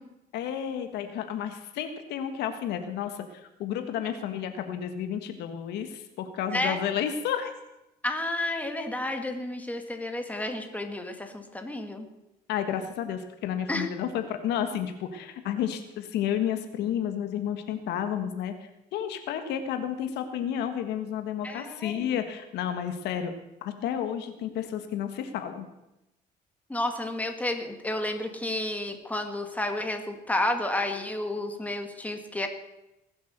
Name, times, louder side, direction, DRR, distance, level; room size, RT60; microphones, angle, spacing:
voice 1, 0.3-7.5 12.5-18.5 18.9-23.3 23.6-25.7, left 9 dB, 80° left, 8 dB, 1.6 m, -31 dB
voice 2, 8.0-12.1 13.7-13.9 21.4-22.1 26.7-32.5, left 1 dB, 10° left, 5 dB, 2.2 m, -31 dB
19.5 x 8.1 x 6.7 m, 0.91 s
cardioid pair, 110°, 17 cm